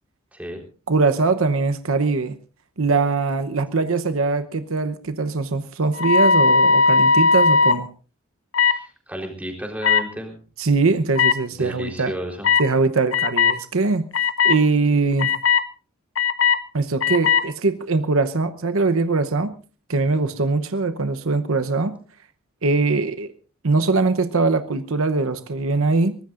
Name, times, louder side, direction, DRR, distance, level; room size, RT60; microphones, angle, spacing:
voice 1, 0.9-2.4 2.8-7.9 10.6-12.1 12.6-14.1 14.4-15.3 16.7-19.5 19.9-22.0 22.6-23.3 23.6-26.2, right 3 dB, 75° right, 9 dB, 0.9 m, -21 dB
sound 1, 6.0-7.8 8.5-8.8 9.8-10.0 11.2-11.3 12.4-12.7 13.1-13.6 14.1-14.6 15.2-15.6 16.2-16.6 17.0-17.4, left 5 dB, 70° left, 0.9 m, -17 dB
voice 2, 8.6-10.4 11.6-12.5, equal, 5° right, 1 dB, 3.9 m, -32 dB
23.0 x 19.0 x 2.5 m, 0.36 s
head